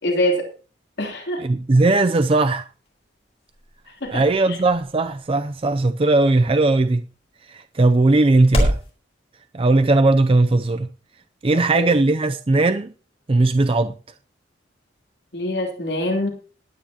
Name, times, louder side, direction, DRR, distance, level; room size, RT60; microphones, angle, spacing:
voice 1, 0.0-0.4 1.0-1.4 4.0-4.6 11.5-11.9 15.3-16.3, left 1 dB, 55° left, 3.1 m, -24 dB
voice 2, 1.4-2.7 4.1-7.0 7.5-8.8 9.5-10.9 11.4-12.9 13.3-13.9, right 2 dB, 30° right, 0.4 m, -18 dB
sound 1, 2.6-8.9, equal, 30° left, 4.0 m, -30 dB
20.5 x 9.3 x 2.9 m
head